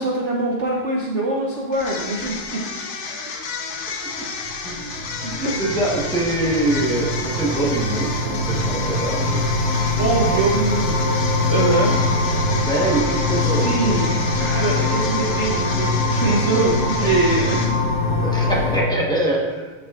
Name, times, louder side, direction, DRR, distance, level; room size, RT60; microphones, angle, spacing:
voice 1, 0.0-2.6 5.2-5.5 10.0-11.2 11.5-12.0 13.6-17.8, right 2 dB, 75° right, -3 dB, 0.6 m, -23 dB
sound 1, 1.7-18.0, left 4 dB, 75° left, 0.6 m, -31 dB
sound 2, 4.4-18.8, left 2 dB, 40° left, 1.3 m, -23 dB
voice 2, 5.6-9.4 12.7-13.8 18.2-19.7, right 1 dB, 5° left, -4 dB, 0.4 m, -23 dB
12.0 x 6.0 x 2.4 m, 1.2 s
omnidirectional pair, 2.3 m